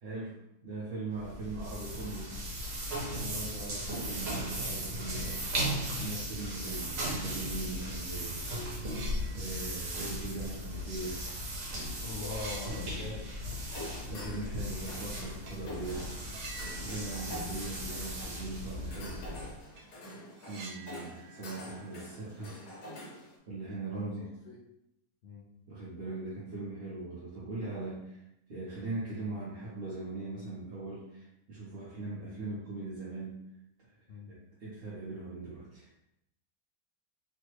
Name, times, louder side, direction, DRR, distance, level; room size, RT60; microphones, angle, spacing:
voice 1, 0.0-2.4 3.2-5.5 6.0-8.5 9.3-11.3 12.8-13.1 14.1-19.2 20.4-22.6 23.5-24.3 25.7-28.2 28.5-33.4 33.8-33.9 34.3-35.9, right 3 dB, 50° right, -8 dB, 0.7 m, -40 dB
sound 1, 1.1-19.6, equal, 70° right, 1.3 m, -37 dB
sound 2, 4.9-5.9 6.3-6.4 7.3-7.4 7.8-11.3 11.6-11.8 12.0-13.6 13.9-14.0 15.4-15.7 16.2-18.3 18.6-18.7 19.1-19.2 19.6-22.8, right 3 dB, 85° right, 1.3 m, -50 dB
voice 2, 12.0-13.3 23.9-24.6 25.2-25.4 34.1-34.3, left 3 dB, 65° left, -4 dB, 0.6 m, -42 dB
sound 3, 13.6-23.4, left 1 dB, 90° left, 1.3 m, -46 dB
3.2 x 2.1 x 3.1 m, 0.81 s
omnidirectional pair, 1.6 m